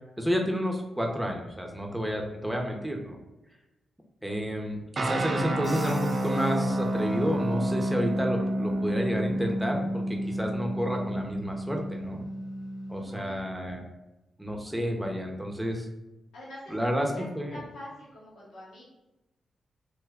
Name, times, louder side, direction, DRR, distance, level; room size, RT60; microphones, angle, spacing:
voice 1, 0.2-3.2 4.2-12.2 12.9-13.8 14.4-15.9 16.7-17.1 17.3-17.6, equal, 5° right, 1 dB, 0.7 m, -30 dB
sound 1, 5.0-13.2, right 1 dB, 50° right, 0.4 m, -30 dB
Crash cymbal, 5.6-7.3, left 1 dB, 25° left, 1.0 m, -48 dB
voice 2, 13.0-13.8 16.3-18.8, left 1 dB, 85° left, -8 dB, 0.8 m, -45 dB
3.0 x 2.2 x 3.5 m, 0.99 s
supercardioid pair, 50°, 0 cm